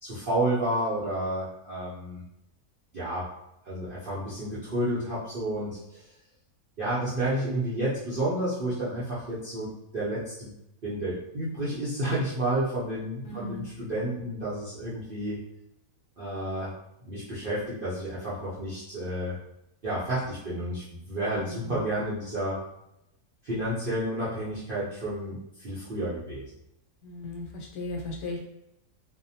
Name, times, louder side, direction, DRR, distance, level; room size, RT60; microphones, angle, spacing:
voice 1, 0.0-2.2 2.9-3.3 3.6-6.1 6.8-10.5 10.8-15.4 16.2-16.7 17.0-19.4 19.8-22.6 23.4-26.5, right 1 dB, 60° right, -10 dB, 0.5 m, -31 dB
voice 2, 13.2-13.7 21.3-21.9 27.0-28.4, left 2 dB, 75° left, -1 dB, 1.1 m, -37 dB
2.6 x 2.1 x 2.7 m, 0.84 s
omnidirectional pair, 1.7 m